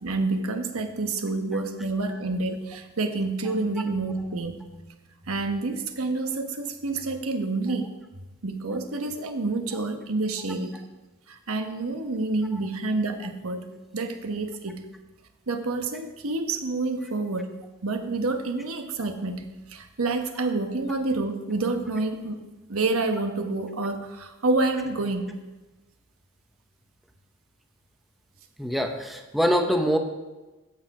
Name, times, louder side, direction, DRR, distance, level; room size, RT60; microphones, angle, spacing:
voice 1, 0.0-4.7 5.3-7.9 8.4-10.8 11.3-13.7 13.9-14.8 15.5-17.5 17.8-19.4 19.7-22.4 22.7-25.3, right 3 dB, 90° right, 6 dB, 1.2 m, -28 dB
voice 2, 28.6-30.0, equal, ahead, 4 dB, 0.8 m, -24 dB
15.0 x 6.2 x 4.8 m, 1.1 s
head